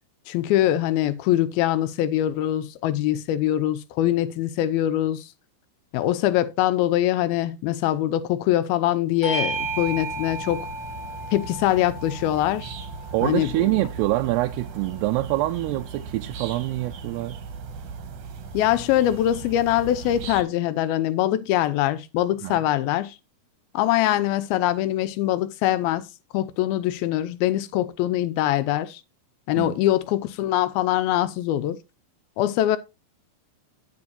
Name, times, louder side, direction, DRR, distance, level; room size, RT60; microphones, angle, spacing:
voice 1, 0.3-5.3 5.9-10.7 11.3-12.7 13.2-13.9 18.5-23.2 23.7-26.1 26.3-29.0 29.5-31.8 32.4-32.8, left 13 dB, 80° left, 2.5 m, -23 dB
Bell / Doorbell, 9.2-14.1, right 2 dB, 15° right, 2.4 m, -33 dB
sound 1, 9.5-20.4, right 5 dB, 60° right, 2.6 m, -38 dB
voice 2, 13.1-17.4 22.4-22.6 29.6-29.8, right 18 dB, 90° right, 2.7 m, -25 dB
9.7 x 9.6 x 2.8 m
omnidirectional pair, 4.6 m